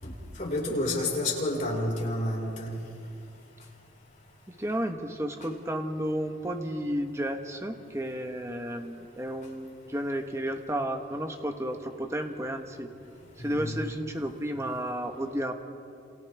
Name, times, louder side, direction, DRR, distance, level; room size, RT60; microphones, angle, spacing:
voice 1, 0.0-2.7 13.4-13.8, left 1 dB, 40° left, -3 dB, 5.1 m, -30 dB
voice 2, 4.5-12.9 13.4-15.5, equal, 15° right, 4 dB, 1.3 m, -32 dB
29.5 x 27.5 x 3.5 m, 2.5 s
head